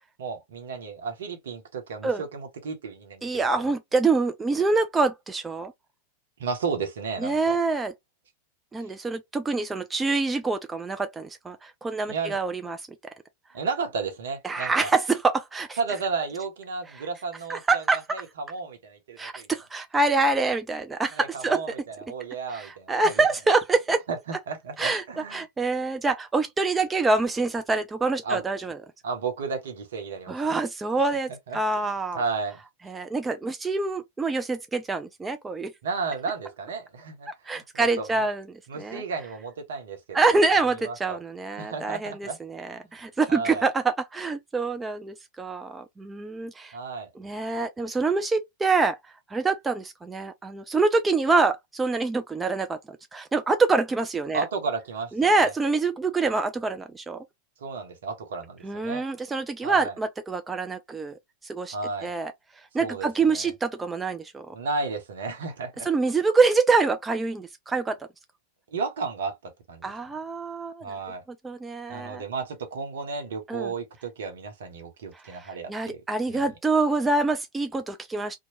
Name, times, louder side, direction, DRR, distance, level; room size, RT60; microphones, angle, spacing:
voice 1, 0.2-3.4 6.4-7.6 12.1-12.4 13.5-14.9 15.8-19.5 21.1-23.2 24.1-25.4 28.2-28.4 29.0-30.4 31.0-31.2 31.5-32.6 35.8-38.3 38.7-40.2 40.8-41.2 41.6-42.4 42.9-43.0 43.3-43.7 46.7-47.1 54.3-55.5 57.6-59.0 59.6-59.9 61.7-62.1 62.8-63.5 64.5-65.9 68.7-69.9 70.8-71.2 71.9-76.0 76.3-76.4, right 4 dB, 60° right, 0.9 m, -33 dB
voice 2, 3.2-5.7 7.2-7.9 8.7-12.8 14.4-15.8 17.5-18.0 19.2-21.6 22.5-24.0 24.8-25.0 25.3-28.8 30.3-32.2 32.9-35.7 37.5-38.4 38.8-39.0 40.1-46.8 47.2-49.0 49.3-52.8 53.1-54.5 55.2-57.2 58.6-61.7 62.0-62.3 62.7-64.5 65.9-68.0 69.8-70.8 71.4-72.2 73.5-73.7 75.2-78.4, right 3 dB, 15° right, 0.3 m, -25 dB
2.8 x 2.2 x 2.8 m
figure-of-eight pair, 90°, 0 cm